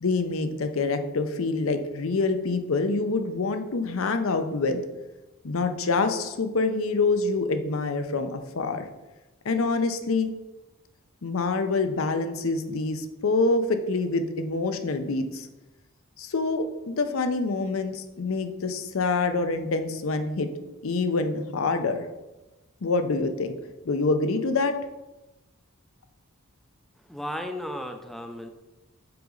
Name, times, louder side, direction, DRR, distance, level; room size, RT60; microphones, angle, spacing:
voice 1, 0.0-4.8 5.4-8.9 9.4-10.3 11.2-15.5 16.2-20.5 20.8-22.1 22.8-23.6 23.8-24.8, left 3 dB, 65° left, 8 dB, 0.6 m, -26 dB
voice 2, 27.1-28.5, equal, ahead, 5 dB, 0.4 m, -34 dB
5.7 x 5.2 x 3.8 m, 1.0 s
head